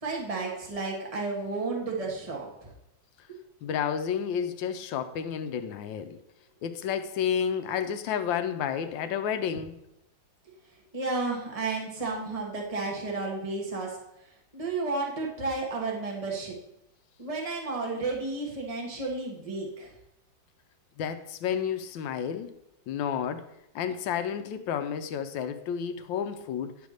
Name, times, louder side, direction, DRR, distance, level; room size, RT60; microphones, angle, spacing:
voice 1, 0.0-2.7 3.3-3.4 10.9-16.5 17.2-19.9, right 3 dB, 20° right, 1.4 m, -32 dB
voice 2, 3.6-6.2 6.6-9.8 21.0-22.5 22.9-23.5 23.7-26.8, left 8 dB, 90° left, 1.3 m, -31 dB
10.0 x 3.5 x 6.4 m
omnidirectional pair, 2.0 m